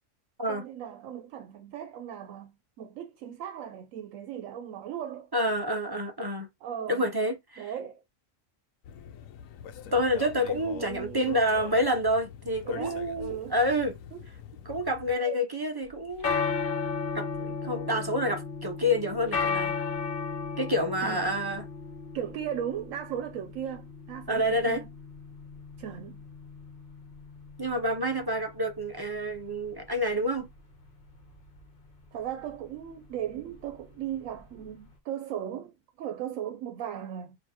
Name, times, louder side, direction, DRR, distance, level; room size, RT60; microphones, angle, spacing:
voice 1, 0.5-5.3 6.6-7.1 7.6-8.0 10.5-11.3 12.7-13.6 14.1-14.2 15.2-15.4 21.0-21.3 22.1-24.9 25.8-26.2 32.1-37.4, right 10 dB, 80° right, 1.0 m, -37 dB
voice 2, 5.3-6.5 6.9-7.6 9.9-13.9 14.7-16.5 17.1-19.7 20.6-21.6 24.3-24.8 27.6-30.5, equal, 35° right, 0.3 m, -28 dB
sound 1, 8.8-15.2, left 8 dB, 85° left, 1.0 m, -44 dB
sound 2, 15.9-34.9, left 5 dB, 45° left, 1.0 m, -36 dB
6.3 x 2.6 x 2.8 m
omnidirectional pair, 1.4 m